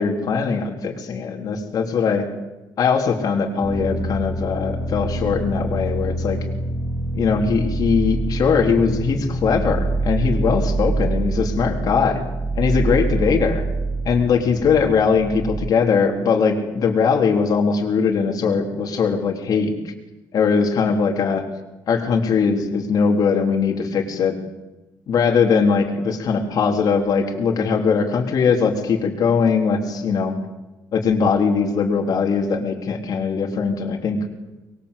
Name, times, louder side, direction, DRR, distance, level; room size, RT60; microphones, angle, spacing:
voice 1, 0.0-2.3 2.8-6.4 7.1-12.2 12.5-13.6 14.0-19.9 20.3-21.4 21.9-24.3 25.1-30.3 30.9-34.2, left 5 dB, 50° left, 2 dB, 3.6 m, -20 dB
sound 1, 3.6-15.7, right 2 dB, 30° right, 2.5 m, -25 dB
24.0 x 22.0 x 8.3 m, 1.1 s
cardioid pair, 135°, 8 cm